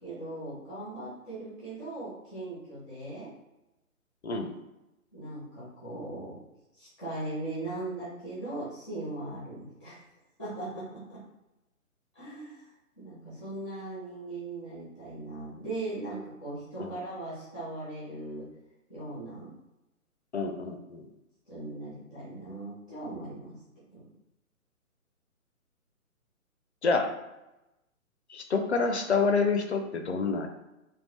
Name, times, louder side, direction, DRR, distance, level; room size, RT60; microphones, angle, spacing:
voice 1, 0.0-3.3 5.1-6.4 6.7-10.0 10.4-11.2 12.1-12.7 13.0-18.5 18.9-19.5 21.5-23.5 23.9-24.1, right 2 dB, 5° right, -12 dB, 0.6 m, -39 dB
voice 2, 4.2-4.5 16.8-17.0 20.3-21.1 26.8-27.1 28.3-30.5, left 4 dB, 50° left, 5 dB, 0.5 m, -28 dB
3.6 x 2.3 x 3.1 m, 0.95 s
figure-of-eight pair, 140°, 43 cm